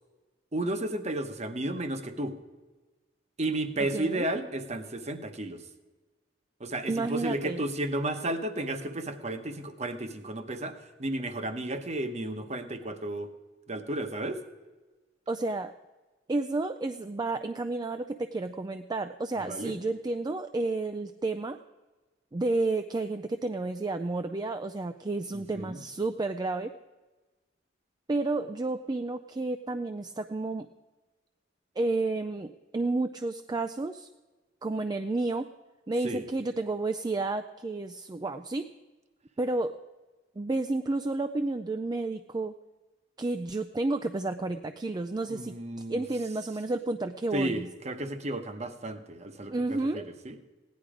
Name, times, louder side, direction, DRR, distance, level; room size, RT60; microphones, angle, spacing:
voice 1, 0.5-2.3 3.4-5.7 6.6-13.3 13.7-14.4 19.4-19.8 25.3-25.8 36.0-36.3 45.2-46.0 47.3-50.3, right 1 dB, 40° right, 8 dB, 1.0 m, -33 dB
voice 2, 3.9-4.3 6.9-7.6 15.3-15.7 16.3-21.6 22.3-26.7 28.1-30.7 31.8-34.1 34.6-35.5 35.9-38.7 39.4-39.7 40.4-42.5 43.2-45.6 45.9-47.7 49.5-50.1, right 2 dB, 25° right, 8 dB, 0.4 m, -31 dB
16.5 x 10.5 x 5.0 m, 1.2 s
head